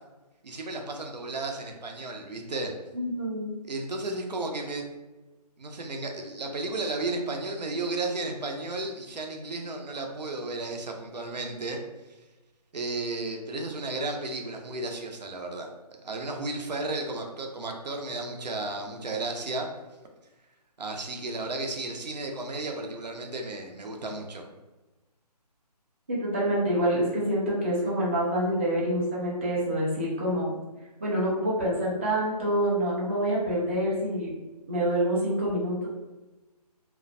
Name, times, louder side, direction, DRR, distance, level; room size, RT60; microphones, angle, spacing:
voice 1, 0.4-2.7 3.6-4.8 5.6-11.8 12.1-12.2 12.7-15.7 16.0-19.7 20.8-24.4, right 2 dB, 85° right, 3 dB, 0.6 m, -33 dB
voice 2, 2.9-3.5 26.1-30.6 31.0-34.3 34.7-35.9, right 1 dB, 20° right, -6 dB, 0.3 m, -27 dB
2.4 x 2.0 x 2.4 m, 1.1 s
figure-of-eight pair, 155°, 21 cm